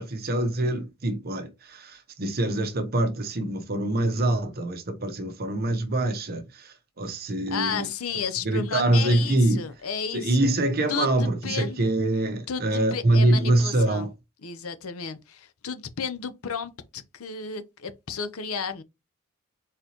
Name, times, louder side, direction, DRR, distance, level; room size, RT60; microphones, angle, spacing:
voice 1, 0.0-7.9 8.4-9.7 10.1-14.1, right 2 dB, 45° right, 0.9 m, -24 dB
voice 2, 7.5-10.6 10.9-12.0 12.5-14.1 14.4-18.8, left 6 dB, 85° left, 0.7 m, -33 dB
4.3 x 4.0 x 3.0 m
head